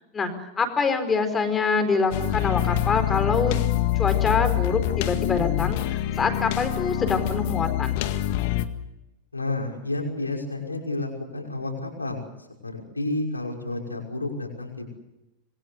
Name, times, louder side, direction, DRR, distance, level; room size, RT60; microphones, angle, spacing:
voice 1, 0.6-3.5 4.0-8.0, left 4 dB, 20° left, 8 dB, 4.6 m, -25 dB
sound 1, 2.1-8.7, left 13 dB, 50° left, 1.8 m, -25 dB
voice 2, 9.3-14.9, left 2 dB, 80° left, 1 dB, 5.8 m, -31 dB
26.5 x 22.5 x 8.1 m, 0.96 s
figure-of-eight pair, 90°, 0 cm